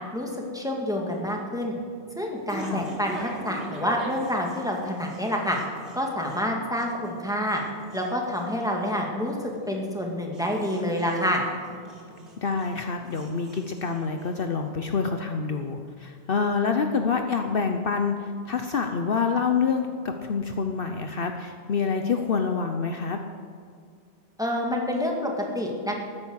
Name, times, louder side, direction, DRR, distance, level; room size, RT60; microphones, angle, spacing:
voice 1, 0.1-1.7 2.2-5.6 5.9-7.6 7.9-9.4 9.7-11.4 24.4-25.9, equal, 5° right, 0 dB, 2.1 m, -28 dB
sound 1, 1.1-14.7, right 2 dB, 75° right, 3.5 m, -42 dB
voice 2, 12.4-23.2, left 5 dB, 55° left, 5 dB, 0.9 m, -27 dB
14.5 x 9.9 x 6.4 m, 2.3 s
omnidirectional pair, 1.2 m